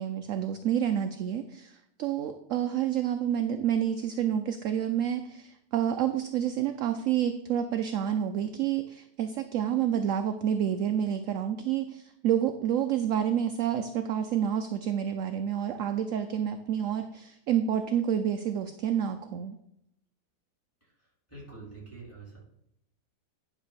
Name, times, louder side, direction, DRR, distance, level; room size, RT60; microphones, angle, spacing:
voice 1, 0.0-19.6, right 9 dB, 70° right, 8 dB, 0.8 m, -29 dB
voice 2, 20.8-22.4, right 3 dB, 10° left, -6 dB, 3.9 m, -47 dB
10.0 x 3.6 x 6.8 m, 0.78 s
omnidirectional pair, 1.8 m